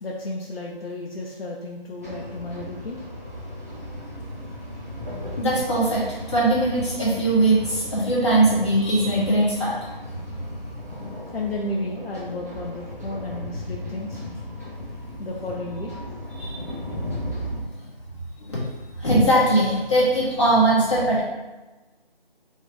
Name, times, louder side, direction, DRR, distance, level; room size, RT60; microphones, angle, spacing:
voice 1, 0.0-3.0 11.3-14.2 15.2-16.1, left 2 dB, 75° left, -1 dB, 0.6 m, -32 dB
sound 1, 2.0-17.6, left 1 dB, 15° right, 0.7 m, -36 dB
voice 2, 5.4-9.7 10.9-11.1 16.4-16.8 18.4-18.6 19.0-21.2, right 1 dB, 30° left, -9 dB, 1.3 m, -20 dB
3.7 x 3.1 x 3.2 m, 1.1 s
figure-of-eight pair, 170°, 30 cm